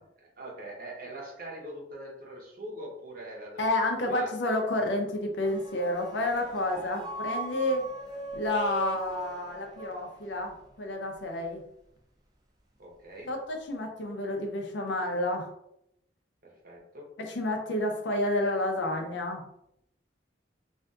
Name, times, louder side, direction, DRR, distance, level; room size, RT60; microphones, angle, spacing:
voice 1, 0.2-4.3 12.8-13.3 16.4-17.1, right 1 dB, 50° right, -1 dB, 0.7 m, -43 dB
voice 2, 3.6-7.9 8.4-11.6 13.3-15.5 17.2-19.4, left 1 dB, 75° left, 3 dB, 0.5 m, -30 dB
sound 1, 5.4-10.7, right 2 dB, 20° right, 0.4 m, -40 dB
2.6 x 2.4 x 2.3 m, 0.79 s
head